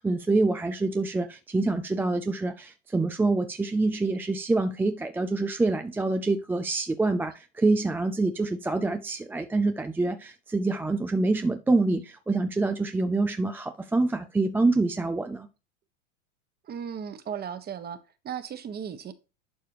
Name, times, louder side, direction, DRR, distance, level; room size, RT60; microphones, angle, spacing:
voice 1, 0.0-15.5, right 3 dB, 5° right, 0.4 m, -26 dB
voice 2, 16.6-18.0 18.2-19.1, right 8 dB, 25° right, 1.2 m, -36 dB
11.0 x 4.8 x 2.9 m
supercardioid pair, 120°, 37 cm